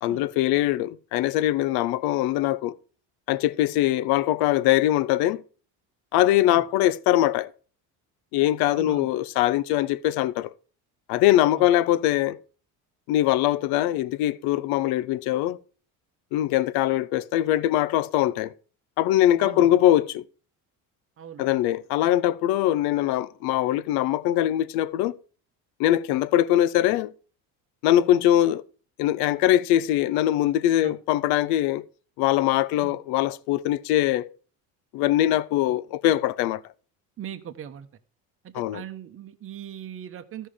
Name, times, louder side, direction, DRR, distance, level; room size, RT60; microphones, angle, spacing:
voice 1, 0.0-2.8 3.3-5.4 6.1-7.5 8.3-10.5 11.1-12.4 13.1-15.6 16.3-18.5 19.0-20.2 21.4-25.2 25.8-27.1 27.8-28.6 29.0-31.8 32.2-34.3 34.9-36.6 38.5-38.8, left 13 dB, 85° left, 0.7 m, -22 dB
voice 2, 8.7-9.1 11.6-11.7 19.4-19.7 21.2-21.5 30.8-31.0 32.8-33.0 35.7-35.8 37.2-37.9 38.4-40.5, right 10 dB, 35° right, 0.9 m, -40 dB
13.5 x 5.5 x 5.0 m
cardioid pair, 115°, 37 cm